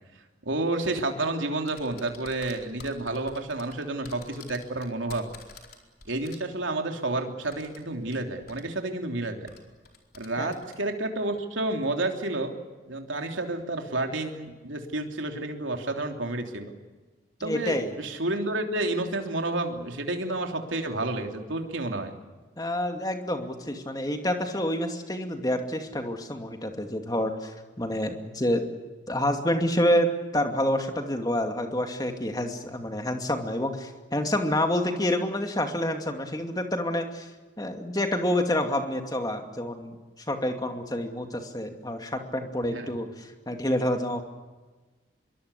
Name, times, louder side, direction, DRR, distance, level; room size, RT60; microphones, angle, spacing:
voice 1, 0.4-5.3 6.0-9.5 10.1-12.5 12.9-16.7 17.4-22.1 42.7-42.9, right 2 dB, 80° right, 4 dB, 3.2 m, -30 dB
sound 1, 1.7-6.4 7.5-8.2 8.5-8.6 9.5-10.8, left 4 dB, 50° left, 4.3 m, -48 dB
voice 2, 17.4-17.9 22.6-28.6 29.1-37.3 37.6-40.0 40.3-44.2, left 1 dB, 20° left, 5 dB, 2.5 m, -28 dB
25.5 x 23.0 x 8.4 m, 1.3 s
head